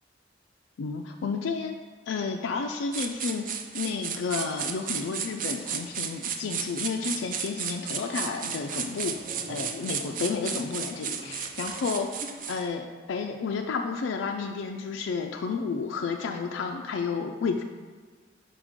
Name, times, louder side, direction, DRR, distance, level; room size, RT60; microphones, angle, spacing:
voice 1, 0.8-1.8 2.1-9.2 9.5-17.6, left 5 dB, 90° left, 3 dB, 0.4 m, -31 dB
sound 1, 2.9-12.7, right 7 dB, 45° right, 0.4 m, -34 dB
5.2 x 5.0 x 3.6 m, 1.5 s
head